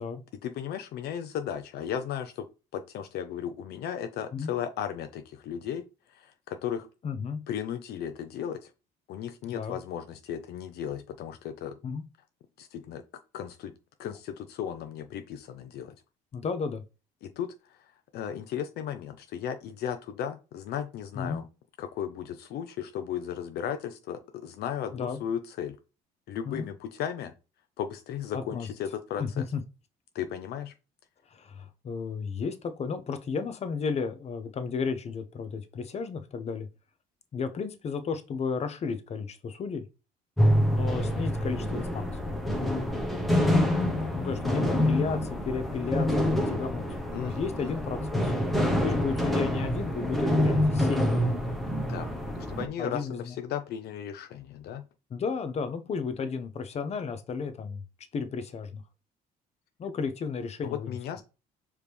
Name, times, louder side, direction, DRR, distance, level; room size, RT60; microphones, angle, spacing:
voice 1, 0.4-2.4 2.7-5.8 6.1-6.9 7.5-8.7 9.1-11.8 12.6-13.0 13.3-13.7 14.0-15.9 17.2-17.8 18.1-21.4 21.8-25.8 26.3-27.3 27.8-29.4 30.1-30.7 47.1-47.7 51.9-52.1 52.4-54.9 60.6-61.2, left 9 dB, 70° left, 0.5 m, -35 dB
voice 2, 7.0-7.4 9.5-9.8 11.8-12.0 16.3-16.8 21.2-21.4 24.9-25.2 26.5-26.7 28.3-28.7 29.2-29.6 31.3-36.7 37.3-39.8 40.7-42.1 44.1-48.3 48.8-51.1 52.8-53.4 55.1-57.8 58.1-58.8 59.8-61.0, left 5 dB, 40° left, 0.7 m, -33 dB
sound 1, 40.4-52.7, left 1 dB, ahead, 1.0 m, -26 dB
4.9 x 3.0 x 3.3 m
cardioid pair, 110°, 17 cm